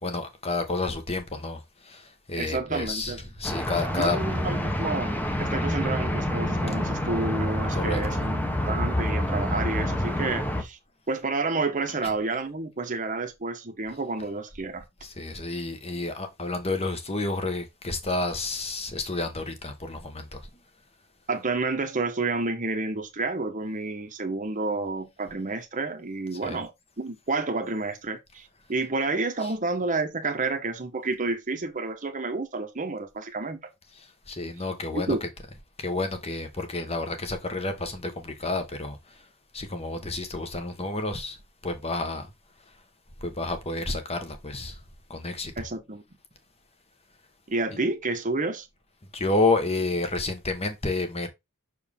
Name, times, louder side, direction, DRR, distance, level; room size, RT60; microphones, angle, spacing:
voice 1, 0.0-4.2 7.7-8.2 15.0-20.4 26.4-26.6 34.3-35.2 35.8-39.0 39.5-41.4 41.6-42.3 43.2-44.7 45.1-45.5 47.7-47.8 49.1-51.3, left 2 dB, 30° left, 1.3 m, -30 dB
voice 2, 2.4-3.2 3.9-10.8 11.1-14.8 21.3-26.7 27.0-33.6 34.9-35.2 45.6-46.0 47.5-48.7, right 3 dB, 35° right, 1.0 m, -30 dB
sound 1, 3.4-10.6, left 1 dB, 10° left, 1.0 m, -27 dB
6.4 x 4.6 x 3.6 m
head